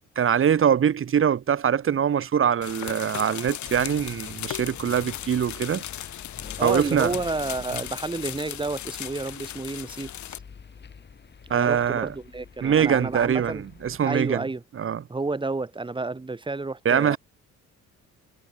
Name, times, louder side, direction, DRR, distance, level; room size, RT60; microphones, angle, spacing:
voice 1, 0.2-5.8 6.6-7.1 11.5-12.1 12.6-14.4 14.8-15.0 16.8-17.2, right 8 dB, 45° right, 1.2 m, -23 dB
sound 1, 2.6-10.4, left 12 dB, 70° left, 1.5 m, -37 dB
sound 2, 3.6-14.0, left 6 dB, 35° left, 1.9 m, -46 dB
voice 2, 6.6-10.4 11.5-13.6 14.0-14.6 15.1-17.2, right 3 dB, 15° right, 1.6 m, -30 dB
cardioid pair, 90°, 30 cm